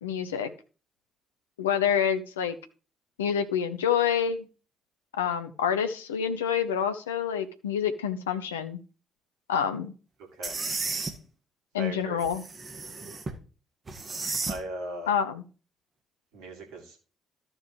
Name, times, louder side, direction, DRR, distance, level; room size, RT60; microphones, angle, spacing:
voice 1, 0.0-0.5 1.6-2.5 3.2-4.5 5.2-8.8 9.5-9.9 11.7-12.4 15.1-15.4, left 8 dB, 80° left, 9 dB, 0.8 m, -27 dB
sound 1, 10.4-11.1 12.2-13.4 13.9-14.6, right 3 dB, 35° right, 1.7 m, -33 dB
voice 2, 11.7-12.2 14.5-15.1 16.3-17.0, right 1 dB, 70° right, 2 dB, 2.7 m, -38 dB
13.5 x 6.2 x 3.1 m, 0.36 s
figure-of-eight pair, 45°, 0 cm